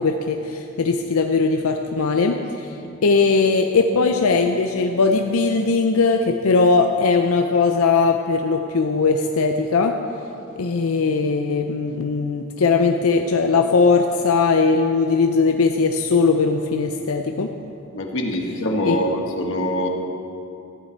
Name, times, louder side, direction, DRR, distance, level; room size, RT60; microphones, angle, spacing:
voice 1, 0.0-2.8 3.0-10.0 10.6-17.5 18.8-19.1, left 4 dB, 90° left, 4 dB, 0.5 m, -19 dB
voice 2, 17.9-19.9, left 1 dB, 60° left, 1 dB, 1.2 m, -24 dB
14.0 x 9.0 x 4.5 m, 2.7 s
head